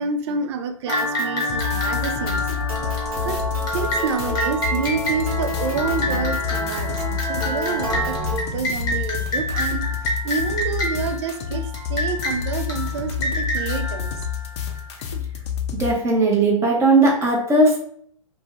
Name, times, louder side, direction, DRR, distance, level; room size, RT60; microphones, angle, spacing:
voice 1, 0.0-2.5 3.2-3.4 3.7-14.2, right 5 dB, 50° right, 7 dB, 0.4 m, -28 dB
sound 1, 0.9-15.0, left 1 dB, 20° left, 0.8 m, -29 dB
sound 2, 0.9-8.4, left 1 dB, 90° right, 0.8 m, -29 dB
sound 3, 1.5-15.9, left 8 dB, 50° left, 0.5 m, -29 dB
voice 2, 15.8-17.8, right 2 dB, 15° right, -2 dB, 0.8 m, -17 dB
2.6 x 2.2 x 3.1 m, 0.62 s
hypercardioid pair, 120°, 18 cm